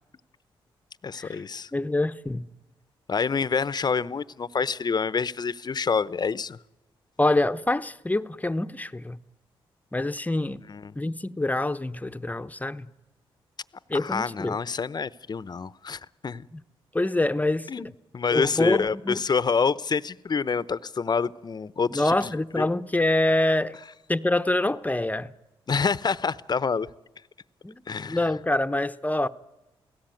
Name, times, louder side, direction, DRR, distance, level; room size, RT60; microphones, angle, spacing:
voice 1, 1.0-1.7 3.1-6.6 10.7-10.9 13.9-16.5 17.7-17.9 18.1-22.7 25.7-26.9 27.9-28.2, left 5 dB, 45° left, 0.8 m, -27 dB
voice 2, 1.7-2.5 7.2-9.2 9.9-10.6 10.9-12.9 13.9-14.6 16.5-16.6 16.9-17.7 18.3-19.2 21.9-23.8 24.1-25.3 27.6-29.3, left 2 dB, 15° left, 0.9 m, -25 dB
29.0 x 17.0 x 9.2 m
supercardioid pair, 55°, 10 cm